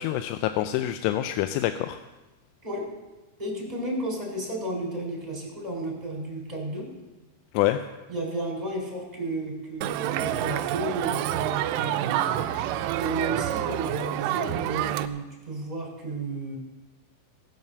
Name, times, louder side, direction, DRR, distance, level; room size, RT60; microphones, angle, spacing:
voice 1, 0.0-2.0 7.5-7.8, left 13 dB, 90° left, 9 dB, 3.1 m, -26 dB
voice 2, 3.4-6.9 8.1-12.5 13.0-16.6, right 2 dB, 10° right, -2 dB, 3.4 m, -33 dB
Crowd, 9.8-15.1, right 13 dB, 90° right, 2.4 m, -28 dB
18.5 x 7.4 x 6.7 m, 1.1 s
omnidirectional pair, 5.5 m